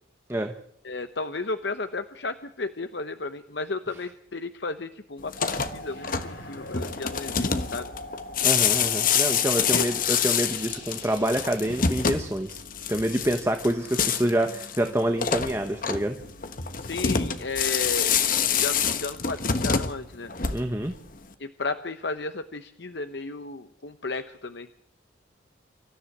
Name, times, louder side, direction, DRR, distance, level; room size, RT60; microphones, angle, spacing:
voice 1, 0.8-7.9 9.6-9.9 16.8-18.1 18.5-20.3 21.4-24.7, left 3 dB, 65° left, 9 dB, 0.9 m, -33 dB
sound 1, 5.2-20.9, left 7 dB, 45° left, 1.3 m, -27 dB
sound 2, 5.4-12.9 13.7-16.7 19.3-19.8, left 2 dB, 85° left, 6.7 m, -43 dB
voice 2, 8.4-12.6 12.9-16.2 20.5-20.9, right 1 dB, 15° right, 5 dB, 1.1 m, -27 dB
25.0 x 14.0 x 8.6 m, 0.70 s
head